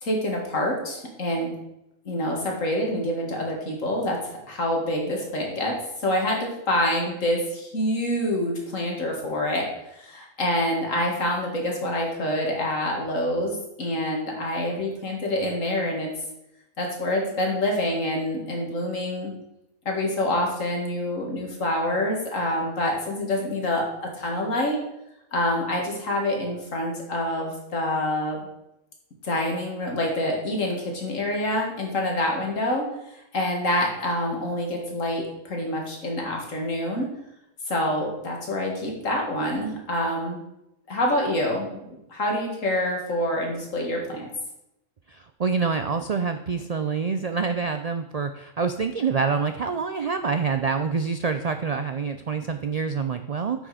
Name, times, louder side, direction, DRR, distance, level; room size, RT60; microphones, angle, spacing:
voice 1, 0.0-1.5 2.1-16.1 16.8-19.3 19.9-23.8 24.1-24.8 25.3-28.4 29.2-37.1 37.7-40.4 40.9-44.3, left 1 dB, 75° left, 0 dB, 2.4 m, -26 dB
voice 2, 45.1-53.7, right 5 dB, 70° right, 8 dB, 0.3 m, -26 dB
8.7 x 6.3 x 4.9 m, 0.86 s
omnidirectional pair, 1.4 m